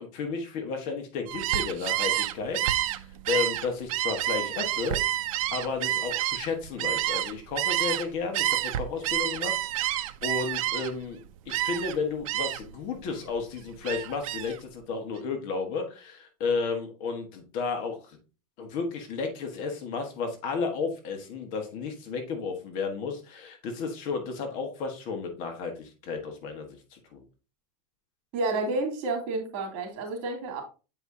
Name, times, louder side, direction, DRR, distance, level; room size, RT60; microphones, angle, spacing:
voice 1, 0.0-2.9 3.3-5.0 5.5-18.2 18.6-27.2, left 4 dB, 50° left, 5 dB, 1.4 m, -33 dB
Gull seagull, 1.3-8.1 8.3-11.1 11.5-12.0 12.3-12.7 13.1-14.6, right 14 dB, 80° right, 0.6 m, -29 dB
voice 2, 28.3-30.6, right 2 dB, 55° right, 2 dB, 2.7 m, -30 dB
7.7 x 4.9 x 2.7 m, 0.33 s
supercardioid pair, 150°, 18 cm